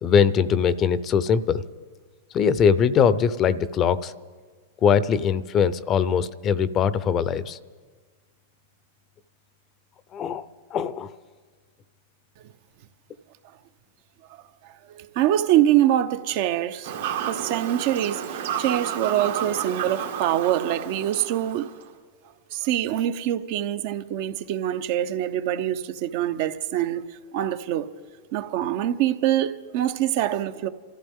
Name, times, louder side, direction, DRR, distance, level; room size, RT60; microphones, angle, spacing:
voice 1, 0.0-1.6 2.3-4.1 4.8-7.6 10.1-11.1, left 7 dB, 35° left, 0.7 m, -21 dB
voice 2, 14.6-16.9 17.3-21.7 22.5-27.0 27.3-27.9 28.3-30.7, right 12 dB, 55° right, 0.8 m, -24 dB
Fowl / Bird vocalization bird call bird song, 16.8-21.8, right 8 dB, 80° right, 2.1 m, -31 dB
28.5 x 14.0 x 3.7 m
hypercardioid pair, 120°, 0 cm